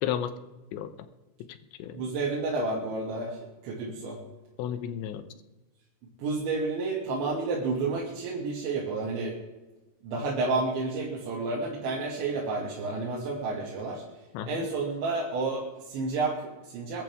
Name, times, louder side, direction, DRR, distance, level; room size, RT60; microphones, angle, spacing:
voice 1, 0.0-0.3 0.7-1.1 1.5-2.0 4.6-5.3 14.3-14.7, left 10 dB, 85° left, 10 dB, 3.2 m, -33 dB
voice 2, 1.9-4.2 6.2-9.4 10.0-14.0 14.5-17.0, right 3 dB, 85° right, -4 dB, 4.7 m, -30 dB
22.5 x 12.0 x 3.6 m, 1.1 s
omnidirectional pair, 5.1 m